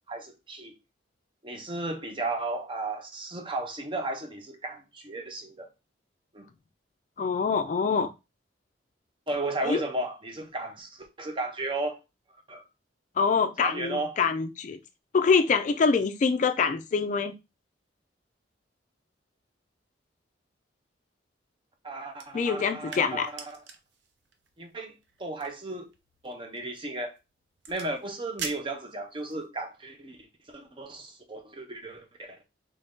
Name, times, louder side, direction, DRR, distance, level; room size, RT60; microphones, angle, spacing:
voice 1, 0.1-0.8 1.4-5.7 6.3-6.5 9.3-12.0 12.5-12.6 13.6-14.1 21.8-23.6 24.6-25.9 26.2-27.1 27.7-30.2 30.5-32.5, right 2 dB, 25° right, 0.6 m, -34 dB
voice 2, 7.2-8.1 9.6-9.8 13.2-14.8 15.1-17.3 22.3-23.3, left 5 dB, 40° left, 0.3 m, -25 dB
sound 1, 22.1-29.5, right 5 dB, 75° right, 0.6 m, -45 dB
3.1 x 2.6 x 3.5 m
head